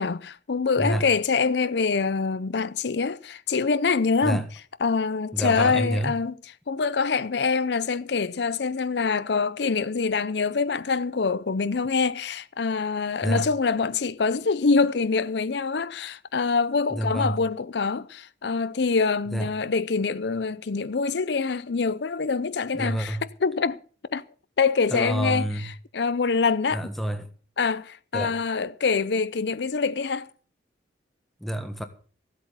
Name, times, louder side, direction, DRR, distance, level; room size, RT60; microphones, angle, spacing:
voice 1, 0.0-4.4 4.8-6.3 6.7-23.8 24.1-24.2 24.6-26.8 27.6-30.3, left 4 dB, 70° left, 0.6 m, -25 dB
voice 2, 5.3-6.1 13.2-13.5 16.9-17.3 19.3-19.5 22.7-23.2 24.9-25.7 26.7-27.3 28.1-28.4 31.4-31.8, right 1 dB, ahead, 1.4 m, -28 dB
15.5 x 8.2 x 6.8 m
head